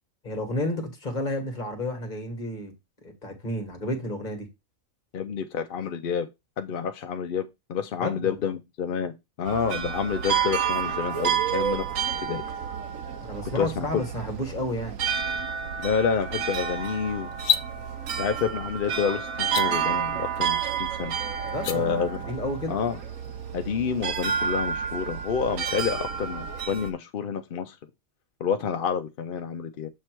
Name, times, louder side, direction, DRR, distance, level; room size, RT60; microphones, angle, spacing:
voice 1, 0.2-2.7 3.0-4.5 8.0-8.4 13.2-15.0 21.4-22.8, left 1 dB, 35° left, 1.7 m, -31 dB
voice 2, 5.1-6.3 6.6-12.4 13.6-14.0 15.8-17.4 18.2-21.1 21.7-22.2 22.7-23.0 23.5-27.8 28.4-29.9, left 6 dB, 60° left, 0.6 m, -29 dB
sound 1, 9.5-26.9, right 7 dB, 75° right, 1.2 m, -30 dB
sound 2, 17.3-17.7 19.4-19.7 21.5-21.8, left 8 dB, 90° left, 1.1 m, -25 dB
7.4 x 3.2 x 4.5 m
omnidirectional pair, 1.4 m